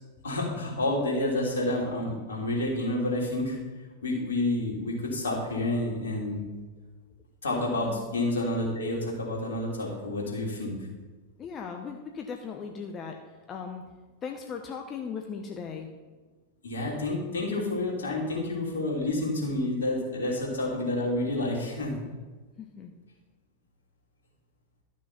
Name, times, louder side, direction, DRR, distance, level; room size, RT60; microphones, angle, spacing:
voice 1, 0.2-3.6 4.0-6.4 7.4-10.9 16.6-21.9, left 1 dB, 70° left, -2 dB, 3.2 m, -29 dB
voice 2, 11.4-13.2 13.5-13.9 14.2-15.9 22.6-22.9, left 6 dB, 25° left, 3 dB, 0.9 m, -38 dB
13.0 x 6.3 x 5.7 m, 1.3 s
figure-of-eight pair, 90°, 0 cm